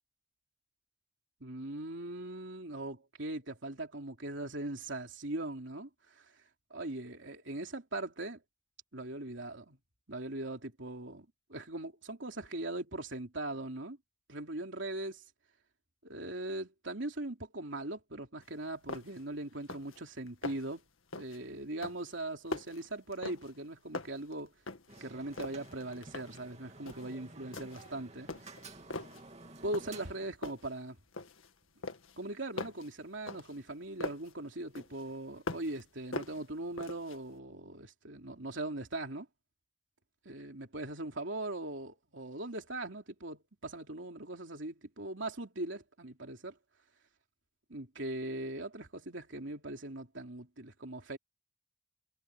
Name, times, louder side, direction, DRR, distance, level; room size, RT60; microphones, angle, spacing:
voice 1, 1.4-6.4 6.7-8.4 8.9-9.8 10.1-14.0 14.3-15.2 16.0-20.8 21.2-24.5 25.0-28.5 29.6-31.0 32.2-39.3 40.2-46.6 47.7-51.2, right 2 dB, 70° right, 3.2 m, -40 dB
sound 1, 18.4-18.5 18.9-19.3 19.6-20.0 20.3-20.8 21.1-21.4 21.8-23.7 23.9-25.0 25.3-26.5 26.9-27.1 27.5-27.9 28.3-29.2 29.7-30.1 30.4-31.5 31.8-34.3 34.7-35.8 36.1-37.2, left 2 dB, 85° left, 1.9 m, -42 dB
sound 2, 24.9-30.3, right 3 dB, 35° right, 2.5 m, -52 dB
head